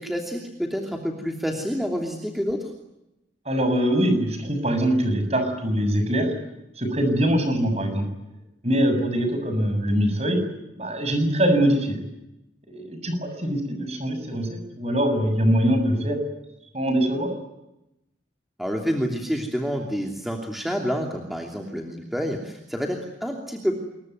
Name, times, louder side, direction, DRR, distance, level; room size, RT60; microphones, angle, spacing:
voice 1, 0.0-2.7 18.6-23.7, equal, ahead, 2 dB, 2.9 m, -28 dB
voice 2, 3.5-6.3 6.8-8.1 8.6-10.4 10.8-12.0 12.7-16.2 16.7-17.3, equal, 35° right, 7 dB, 7.2 m, -23 dB
27.0 x 22.5 x 9.5 m, 0.89 s
head